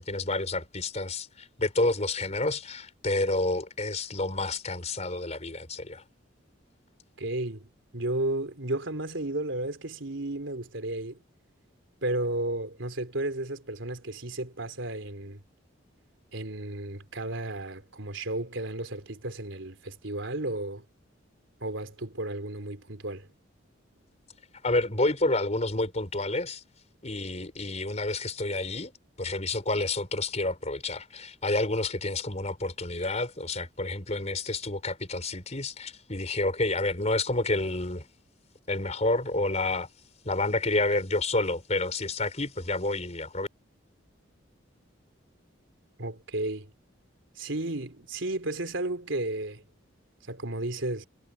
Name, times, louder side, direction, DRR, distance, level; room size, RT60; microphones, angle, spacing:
voice 1, 0.0-6.0 24.6-26.6 27.0-28.9 29.2-38.1 38.7-39.9 40.2-43.5, left 2 dB, 35° left, 4.6 m, -29 dB
voice 2, 7.2-11.2 12.0-15.4 16.3-20.8 21.6-23.3 46.0-46.7 47.4-49.6 50.3-51.0, right 2 dB, 75° right, 3.4 m, -33 dB
head